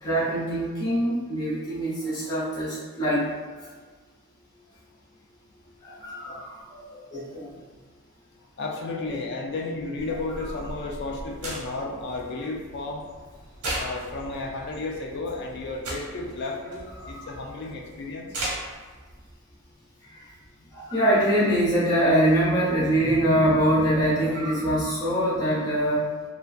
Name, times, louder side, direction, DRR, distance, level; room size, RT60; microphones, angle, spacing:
voice 1, 0.0-3.3 3.6-3.7 5.8-7.5 9.1-9.2 17.0-17.3 20.0-20.3 20.7-26.1, right 1 dB, 20° left, -10 dB, 0.7 m, -24 dB
voice 2, 8.6-13.0 13.7-18.3, left 3 dB, 50° left, 1 dB, 0.3 m, -33 dB
sound 1, 10.0-19.3, right 1 dB, 85° right, 0.8 m, -38 dB
2.5 x 2.2 x 2.3 m, 1.4 s
head